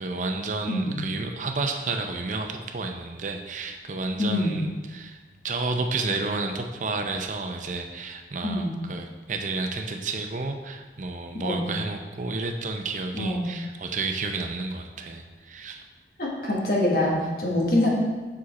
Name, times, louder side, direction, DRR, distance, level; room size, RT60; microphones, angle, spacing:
voice 1, 0.0-5.2 5.4-15.8, right 3 dB, 45° right, 5 dB, 0.5 m, -31 dB
voice 2, 0.7-1.0 4.2-4.6 8.4-8.7 11.4-11.6 13.1-13.4 16.2-17.9, left 1 dB, 55° left, -3 dB, 1.3 m, -25 dB
6.2 x 4.9 x 4.1 m, 1.3 s
head